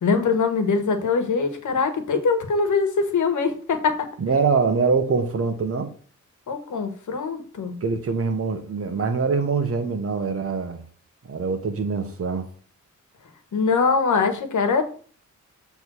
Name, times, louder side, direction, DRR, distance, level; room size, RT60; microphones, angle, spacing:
voice 1, 0.0-4.1 6.5-7.8 13.5-14.8, left 4 dB, 75° left, 1.4 m, -22 dB
voice 2, 4.2-5.9 7.8-10.8 11.3-12.5, right 4 dB, 50° right, 1.3 m, -24 dB
7.8 x 3.5 x 6.2 m
wide cardioid pair, 105°, 31 cm